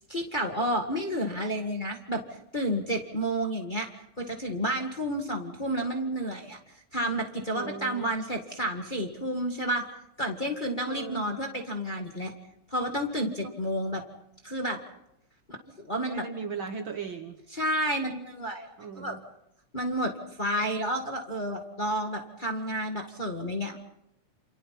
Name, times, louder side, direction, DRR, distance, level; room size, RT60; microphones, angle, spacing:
voice 1, 0.1-2.2 2.5-3.9 4.2-6.6 6.9-9.8 10.2-12.3 12.7-14.0 14.4-14.8 15.8-16.2 17.5-18.7 19.0-19.1 19.7-20.1 20.4-23.8, equal, 20° left, 2 dB, 1.7 m, -30 dB
voice 2, 7.4-8.1 10.9-11.4 13.4-13.5 16.0-17.4 18.8-19.2, right 5 dB, 55° right, 6 dB, 1.7 m, -38 dB
29.0 x 27.5 x 4.2 m, 0.81 s
omnidirectional pair, 3.3 m